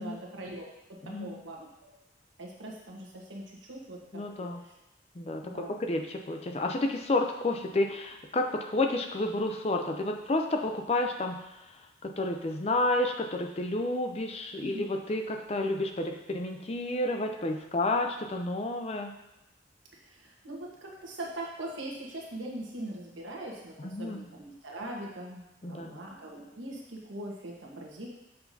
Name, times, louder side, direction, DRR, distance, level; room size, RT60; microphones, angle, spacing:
voice 1, 0.0-1.9 2.4-4.7 5.4-5.7 14.6-14.8 20.0-28.1, right 1 dB, 90° right, -2 dB, 1.3 m, -42 dB
voice 2, 4.1-4.6 5.2-11.7 12.0-19.1 23.8-24.2 25.6-25.9, left 2 dB, 35° left, 4 dB, 0.5 m, -30 dB
6.7 x 5.8 x 2.8 m, 0.89 s
head